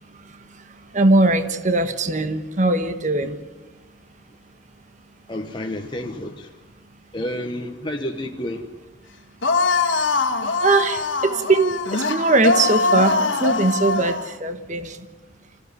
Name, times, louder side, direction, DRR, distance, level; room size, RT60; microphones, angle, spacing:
voice 1, 0.0-3.4 10.6-15.1, right 2 dB, 40° right, 9 dB, 1.3 m, -21 dB
voice 2, 5.3-6.6 7.1-8.8, left 1 dB, 25° left, 2 dB, 1.2 m, -30 dB
sound 1, 9.4-14.3, left 3 dB, 75° left, 1.7 m, -22 dB
26.5 x 15.5 x 9.7 m, 1.3 s
head